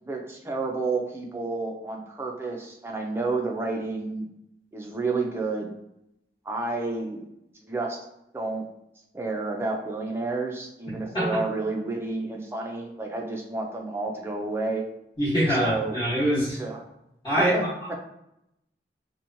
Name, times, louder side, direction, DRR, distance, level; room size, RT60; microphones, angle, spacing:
voice 1, 0.0-4.3 4.7-5.7 6.5-7.3 7.7-8.0 8.3-8.6 9.1-14.8 15.6-16.0 16.5-16.8 17.4-17.7, right 3 dB, 15° right, 1 dB, 0.3 m, -30 dB
voice 2, 15.2-16.6 17.2-18.0, equal, 25° left, -12 dB, 1.0 m, -24 dB
2.8 x 2.1 x 2.6 m, 0.82 s
head